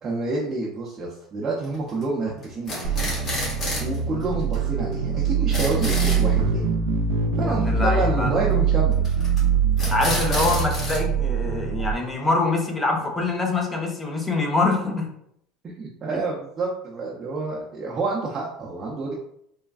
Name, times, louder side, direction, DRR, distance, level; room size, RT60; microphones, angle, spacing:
voice 1, 0.0-3.1 3.8-6.7 7.4-9.2 15.6-19.1, right 3 dB, 35° right, -5 dB, 0.6 m, -28 dB
sound 1, 1.6-2.0 2.4-4.0 4.2-4.3 4.5-4.6 4.9-5.0 5.3-6.2 9.0-9.4 9.8-11.0, left 1 dB, 40° left, 1.2 m, -29 dB
sound 2, 2.8-11.9, right 6 dB, 80° right, 0.3 m, -23 dB
voice 2, 7.4-8.3 9.9-15.1, left 3 dB, 20° left, 1 dB, 0.7 m, -24 dB
3.3 x 2.2 x 2.3 m, 0.72 s
supercardioid pair, 100°, 0 cm